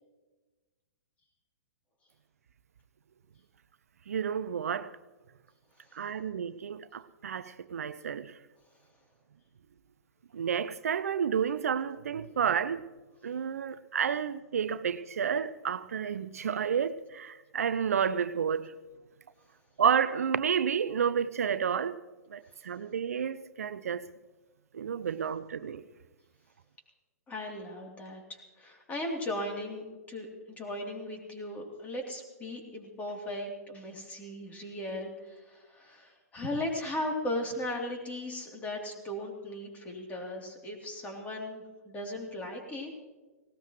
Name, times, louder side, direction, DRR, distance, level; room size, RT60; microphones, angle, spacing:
voice 1, 4.1-4.9 6.0-8.3 10.3-12.8 13.2-18.7 19.8-22.0 22.3-24.1 24.7-25.8, right 7 dB, 65° right, 0.6 m, -30 dB
voice 2, 27.3-42.9, left 1 dB, 20° left, 3.2 m, -37 dB
19.0 x 18.0 x 3.1 m
figure-of-eight pair, 115°, 9 cm